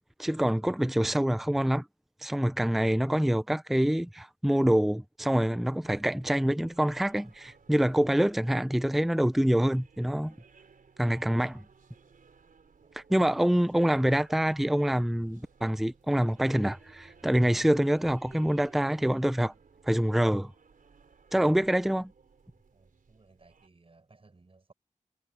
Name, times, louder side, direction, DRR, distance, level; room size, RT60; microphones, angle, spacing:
voice 1, 0.2-1.8 2.2-10.3 11.0-11.6 13.0-19.5 19.9-20.5 21.3-22.1, equal, ahead, 0.6 m, -26 dB
sound 1, 5.8-23.7, right 5 dB, 90° right, 4.4 m, -59 dB
voice 2, 22.7-24.7, right 3 dB, 45° right, 6.2 m, -60 dB
wide cardioid pair, 105°, 14 cm